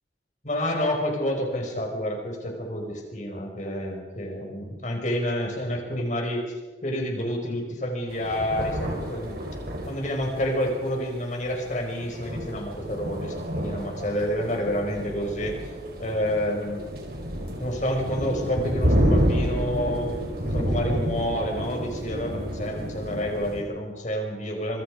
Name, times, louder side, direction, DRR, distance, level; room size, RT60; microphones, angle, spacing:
voice 1, 0.4-9.4 9.9-15.6 16.0-16.8 17.6-24.8, equal, 45° left, 2 dB, 5.6 m, -29 dB
sound 1, 8.1-23.6, equal, 60° right, 4.6 m, -29 dB
26.0 x 24.0 x 5.2 m, 1.3 s
head